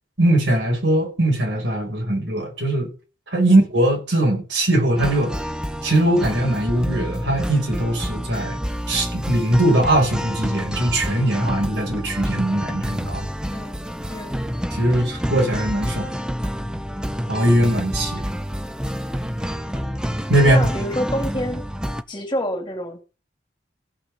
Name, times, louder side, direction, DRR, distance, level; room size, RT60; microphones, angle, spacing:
voice 1, 0.2-2.9 3.3-5.3 5.8-8.6 8.9-13.3 14.7-16.2 17.3-18.2 20.3-20.6, right 1 dB, 80° right, 5.6 m, -20 dB
sound 1, 4.9-22.0, equal, 5° right, 0.7 m, -28 dB
voice 2, 13.4-13.8 14.1-14.4 20.4-21.7 22.1-23.0, equal, 25° left, 2.4 m, -27 dB
15.5 x 6.0 x 6.5 m
head